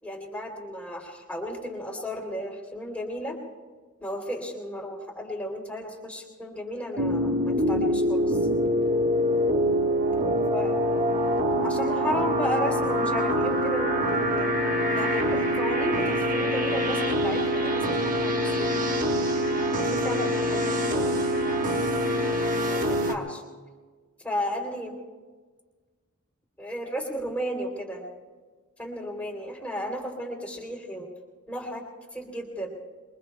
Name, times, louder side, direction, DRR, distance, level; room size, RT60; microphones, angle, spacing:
voice 1, 0.0-3.4 4.0-8.4 10.5-10.9 11.6-14.5 14.9-19.1 19.9-21.4 22.6-23.4 24.2-24.9 26.6-28.1 28.8-31.1 31.5-31.9 32.1-32.7, equal, 5° left, 0 dB, 3.2 m, -34 dB
sound 1, 7.0-23.1, equal, 40° right, 1.4 m, -25 dB
sound 2, 11.5-22.3, left 5 dB, 30° left, 1.1 m, -37 dB
27.0 x 23.0 x 2.3 m, 1.4 s
head